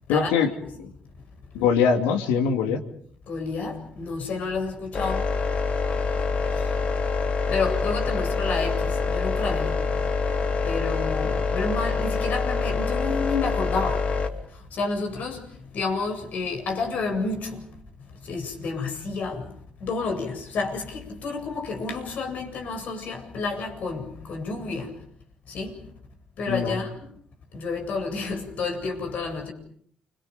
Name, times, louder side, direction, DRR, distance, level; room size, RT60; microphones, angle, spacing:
voice 1, 0.1-0.9 1.5-2.8 11.2-11.4 26.5-26.8, left 6 dB, 85° left, 2.9 m, -23 dB
voice 2, 3.3-5.3 6.5-6.7 7.5-9.8 10.6-14.0 14.7-15.4 15.7-17.6 18.2-19.5 19.8-24.9 25.5-25.7 26.4-27.1 27.5-29.5, left 4 dB, 65° left, 7.9 m, -30 dB
sound 1, 4.9-14.3, left 4 dB, 50° left, 3.7 m, -26 dB
30.0 x 26.0 x 5.3 m
hypercardioid pair, 55°, 3 cm